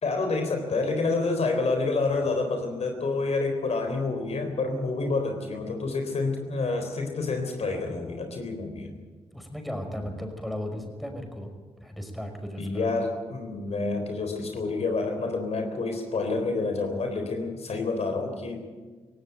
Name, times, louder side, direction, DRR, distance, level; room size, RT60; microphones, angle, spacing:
voice 1, 0.0-8.9 12.6-18.6, left 3 dB, 60° left, 5 dB, 3.8 m, -28 dB
voice 2, 9.3-11.5 11.8-12.9, equal, ahead, 4 dB, 5.6 m, -35 dB
17.5 x 17.0 x 9.3 m, 1.4 s
supercardioid pair, 45°, 12 cm